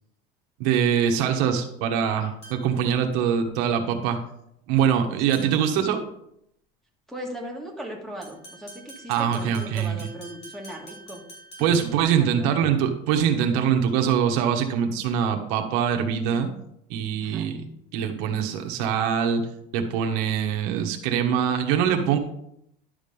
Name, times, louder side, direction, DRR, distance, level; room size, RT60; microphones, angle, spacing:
voice 1, 0.6-4.2 4.7-6.0 9.1-10.0 11.6-16.5 16.9-17.6 17.9-19.5 19.7-22.2, right 8 dB, 80° right, 4 dB, 1.4 m, -23 dB
sound 1, 2.4-2.9 5.3-5.7 8.2-12.2, right 2 dB, 35° left, 4.5 m, -46 dB
voice 2, 7.1-11.2 11.6-11.7 12.2-12.5 17.2-17.5, equal, ahead, 1 dB, 1.9 m, -38 dB
11.0 x 5.2 x 5.3 m, 0.76 s
cardioid pair, 145°, 19 cm